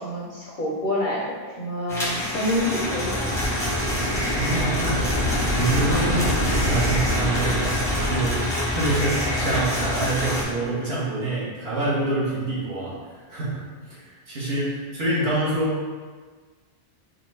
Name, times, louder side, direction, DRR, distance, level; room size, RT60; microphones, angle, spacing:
voice 1, 0.0-3.2, left 1 dB, 55° left, -5 dB, 0.6 m, -27 dB
sound 1, 1.9-10.4, left 1 dB, 5° left, 0.6 m, -26 dB
sound 2, 3.2-8.4, equal, 75° right, 1.9 m, -27 dB
voice 2, 4.3-13.6 13.9-15.9, right 2 dB, 55° right, -7 dB, 1.2 m, -26 dB
4.5 x 2.3 x 3.2 m, 1.5 s
omnidirectional pair, 1.3 m